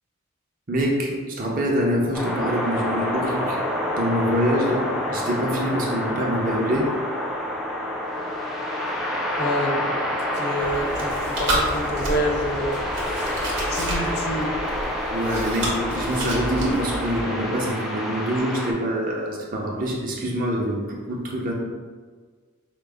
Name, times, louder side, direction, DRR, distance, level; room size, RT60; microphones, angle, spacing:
voice 1, 0.7-3.6 3.9-7.0 15.1-21.5, equal, 40° right, -2 dB, 0.7 m, -25 dB
sound 1, 2.1-18.7, left 1 dB, ahead, 0.4 m, -28 dB
voice 2, 9.4-9.9 10.4-12.8 13.7-14.5, equal, 50° left, 0 dB, 0.6 m, -27 dB
Chewing mastication, 10.6-17.2, right 1 dB, 60° right, 1.0 m, -30 dB
4.8 x 2.0 x 3.4 m, 1.5 s
head